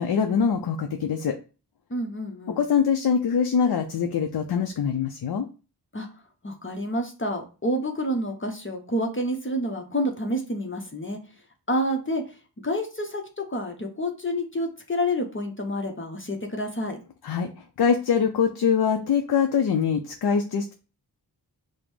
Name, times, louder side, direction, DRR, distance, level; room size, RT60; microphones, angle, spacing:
voice 1, 0.0-1.4 2.6-5.5 17.2-17.5 17.8-20.7, left 6 dB, 65° left, 5 dB, 0.5 m, -23 dB
voice 2, 1.9-2.6 5.9-6.1 6.4-11.2 11.7-12.2 12.6-17.0, equal, 30° left, 3 dB, 0.8 m, -28 dB
5.0 x 2.1 x 3.1 m, 0.34 s
cardioid pair, 45°, 40 cm